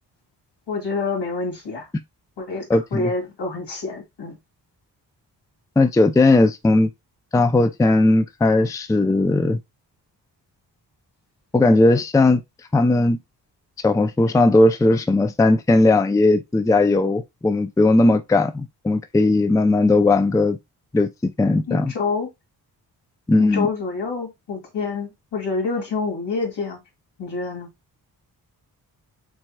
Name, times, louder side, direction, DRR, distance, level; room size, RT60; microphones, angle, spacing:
voice 1, 0.7-1.9 2.4-2.7 2.9-4.4 21.7-22.3 23.4-26.8 27.2-27.7, left 4 dB, 75° left, 2.2 m, -27 dB
voice 2, 2.7-3.1 5.8-6.9 7.3-9.6 11.5-12.4 12.7-13.2 13.8-20.6 20.9-21.9 23.3-23.7, left 2 dB, 10° left, 0.4 m, -17 dB
6.1 x 3.1 x 2.3 m
cardioid pair, 60°, 41 cm